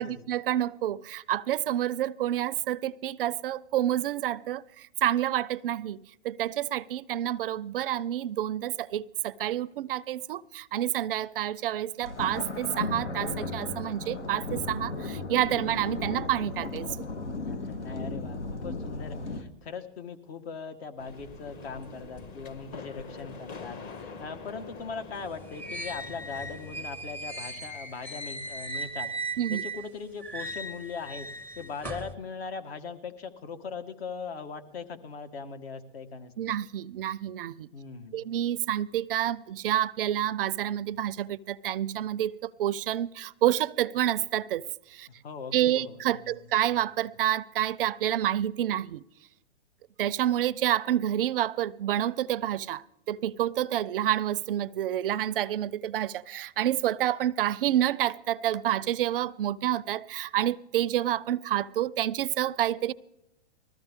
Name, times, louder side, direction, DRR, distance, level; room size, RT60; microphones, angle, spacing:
voice 1, 0.0-6.0 6.2-16.9 29.4-29.6 36.4-37.7 38.1-45.1 45.5-49.0 50.0-62.9, right 12 dB, 55° right, 0.4 m, -28 dB
sound 1, 12.0-19.4, left 3 dB, 90° left, 1.4 m, -35 dB
voice 2, 17.3-29.1 29.5-31.3 31.5-36.6 37.7-38.3 45.2-46.3, left 5 dB, 60° left, 1.7 m, -40 dB
sound 2, 21.0-26.8, left 4 dB, 25° left, 0.9 m, -45 dB
sound 3, 25.2-29.9 30.2-32.2, right 2 dB, 5° left, 0.6 m, -38 dB
20.0 x 14.0 x 3.6 m
hypercardioid pair, 130°, 34 cm